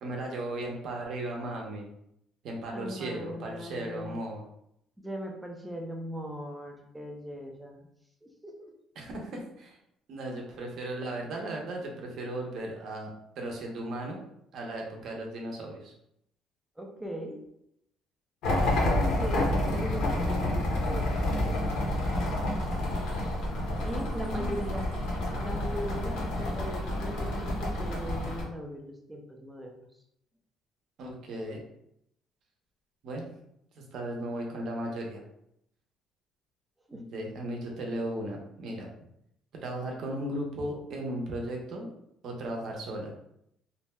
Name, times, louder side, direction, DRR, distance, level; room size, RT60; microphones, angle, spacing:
voice 1, 0.0-1.9 2.4-4.4 9.0-9.8 10.1-13.1 13.4-14.2 14.5-15.9 24.3-24.6 25.3-25.6 31.0-31.6 33.0-33.3 33.8-35.2 36.9-38.9 39.6-41.9 42.2-43.1, right 1 dB, 45° right, 0 dB, 0.6 m, -36 dB
voice 2, 2.7-4.2 5.0-7.9 8.2-8.7 16.8-17.4 18.5-22.1 23.8-24.8 25.4-29.8 36.9-37.1, equal, 5° right, 1 dB, 0.4 m, -39 dB
sound 1, 18.4-28.4, left 1 dB, 65° left, 0.7 m, -29 dB
2.6 x 2.1 x 3.1 m, 0.76 s
cardioid pair, 180°, 0 cm